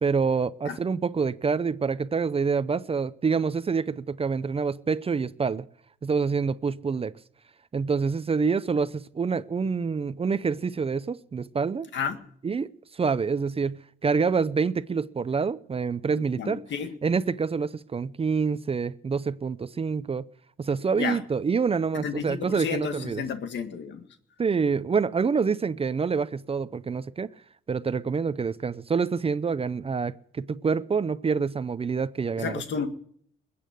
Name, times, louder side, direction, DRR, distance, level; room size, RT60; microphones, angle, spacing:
voice 1, 0.0-5.6 6.0-7.1 7.7-11.9 12.4-16.6 17.0-20.3 20.6-23.2 24.4-27.3 27.7-32.6, right 5 dB, 30° right, 0.6 m, -27 dB
voice 2, 16.4-16.9 20.9-21.2 21.9-24.0 32.4-32.9, left 6 dB, 65° left, 1.9 m, -31 dB
21.5 x 8.5 x 7.6 m
cardioid pair, 90°, 20 cm